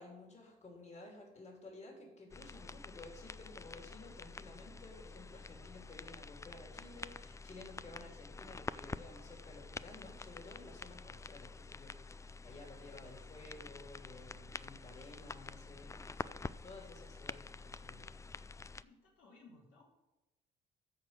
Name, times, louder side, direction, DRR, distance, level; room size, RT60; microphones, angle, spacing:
voice 1, 0.0-18.5, left 2 dB, 35° left, 0 dB, 3.4 m, -54 dB
sound 1, 2.3-18.8, left 4 dB, 15° left, 0.3 m, -48 dB
voice 2, 18.8-19.8, left 3 dB, 85° left, -3 dB, 3.3 m, -60 dB
13.5 x 4.8 x 7.5 m, 1.0 s
cardioid pair, 90°, 20 cm